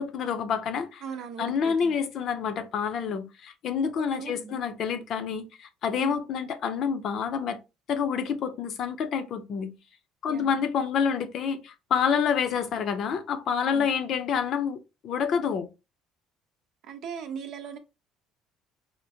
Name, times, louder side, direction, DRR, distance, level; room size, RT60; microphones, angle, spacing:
voice 1, 0.0-1.0 1.4-7.6 7.9-9.7 10.2-15.7, left 6 dB, 55° left, 0.6 m, -28 dB
voice 2, 1.0-2.0 4.0-4.6 6.0-6.2 10.3-10.6 13.6-13.9 16.8-17.8, right 7 dB, 60° right, 0.7 m, -39 dB
4.4 x 2.1 x 2.7 m
cardioid pair, 120°, 0 cm